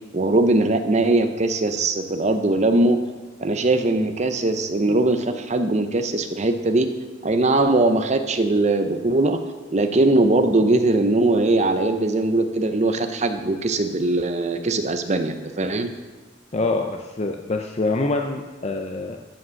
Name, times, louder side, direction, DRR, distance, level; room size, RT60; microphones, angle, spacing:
voice 1, 0.1-3.0 3.4-6.9 7.2-9.4 9.7-15.9, right 2 dB, 35° right, 8 dB, 0.6 m, -20 dB
voice 2, 16.5-19.2, left 2 dB, 30° left, 2 dB, 0.5 m, -25 dB
13.5 x 5.1 x 6.4 m, 1.3 s
head